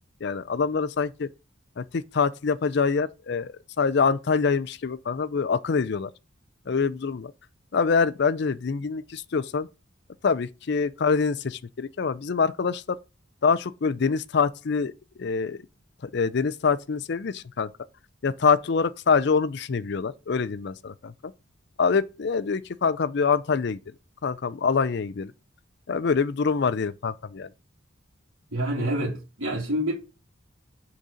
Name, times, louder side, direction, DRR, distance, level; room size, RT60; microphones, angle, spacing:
voice 1, 0.2-1.3 1.8-6.1 6.7-7.3 7.7-9.7 10.2-13.0 13.4-14.9 15.2-15.6 16.0-17.7 18.2-21.3 21.8-23.8 24.2-25.3 25.9-27.5, left 5 dB, 55° left, 0.4 m, -25 dB
voice 2, 28.5-29.9, right 1 dB, 90° right, 2.1 m, -27 dB
6.5 x 4.0 x 5.0 m
head